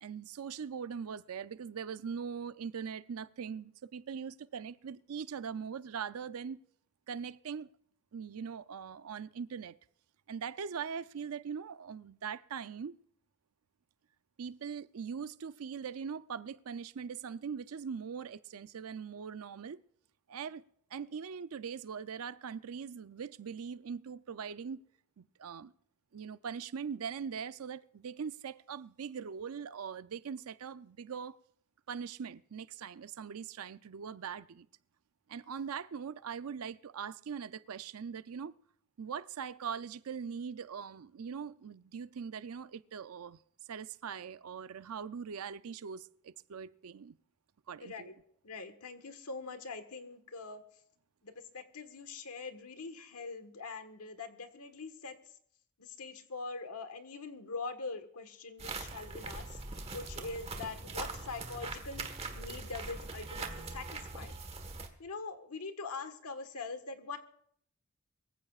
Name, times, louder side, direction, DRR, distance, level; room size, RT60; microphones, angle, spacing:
voice 1, 0.0-6.6 7.1-7.7 8.1-9.8 10.3-13.0 14.4-19.8 20.3-20.6 20.9-24.8 25.2-25.7 26.1-31.4 31.9-34.7 35.3-38.5 39.0-43.4 43.7-47.2 47.7-48.1, right 6 dB, 80° right, 0.5 m, -41 dB
voice 2, 47.8-48.1 48.4-50.6 51.2-55.1 55.8-59.6 59.9-62.1 62.3-63.9 64.1-64.3 65.0-67.2, left 4 dB, 90° left, 1.5 m, -43 dB
sound 1, 58.6-64.9, right 3 dB, 25° right, 1.3 m, -42 dB
23.0 x 15.0 x 2.4 m
head